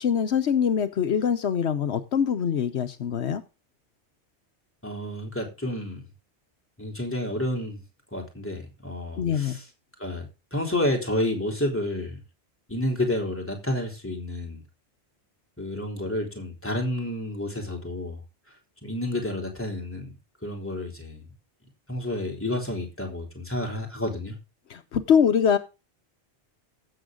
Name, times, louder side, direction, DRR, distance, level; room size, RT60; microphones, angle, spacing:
voice 1, 0.0-3.4 9.2-9.6 24.7-25.6, left 7 dB, 75° left, 9 dB, 1.1 m, -23 dB
voice 2, 4.8-6.1 6.8-7.8 8.1-9.7 10.0-12.2 12.7-14.6 15.6-18.2 18.8-20.1 20.4-21.2 21.9-24.4, left 1 dB, 10° left, 1 dB, 3.5 m, -30 dB
16.0 x 7.1 x 3.7 m, 0.28 s
omnidirectional pair, 1.2 m